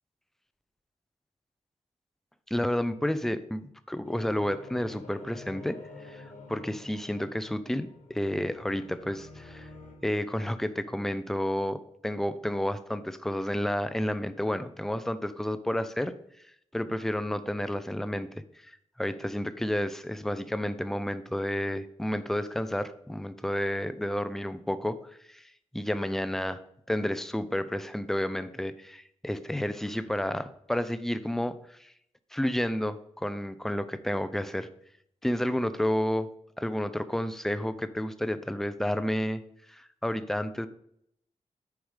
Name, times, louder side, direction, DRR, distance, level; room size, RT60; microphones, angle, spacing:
voice 1, 2.5-9.7 10.0-16.1 16.7-18.3 18.6-18.7 19.0-25.0 25.3-25.4 25.7-26.6 26.9-31.9 32.3-34.7 35.2-36.3 36.6-39.4 39.7-40.7, left 1 dB, 5° left, 13 dB, 0.4 m, -31 dB
sound 1, 4.0-9.9, left 3 dB, 85° left, 2.7 m, -48 dB
9.8 x 4.8 x 4.9 m, 0.72 s
wide cardioid pair, 150°, 13 cm